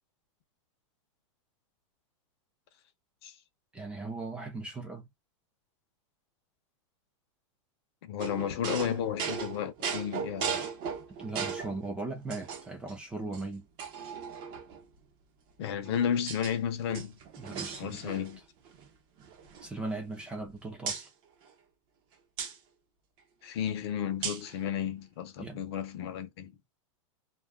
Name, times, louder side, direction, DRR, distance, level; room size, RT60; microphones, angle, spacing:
voice 1, 3.7-5.1 11.2-13.6 17.4-18.3 19.6-21.1 25.4-25.6, right 3 dB, 5° right, 0.6 m, -38 dB
voice 2, 8.0-10.6 15.6-17.2 17.8-18.4 23.4-26.5, left 9 dB, 50° left, 0.7 m, -33 dB
sound 1, 8.2-11.8 12.3-12.9 13.3-13.4 13.8-14.8 15.6-16.5 16.8-18.4 18.7-18.9 19.2-20.5 20.9-21.1 22.4-22.6 24.2-24.6, right 6 dB, 30° right, 0.8 m, -37 dB
2.3 x 2.3 x 3.5 m
supercardioid pair, 165°, 17 cm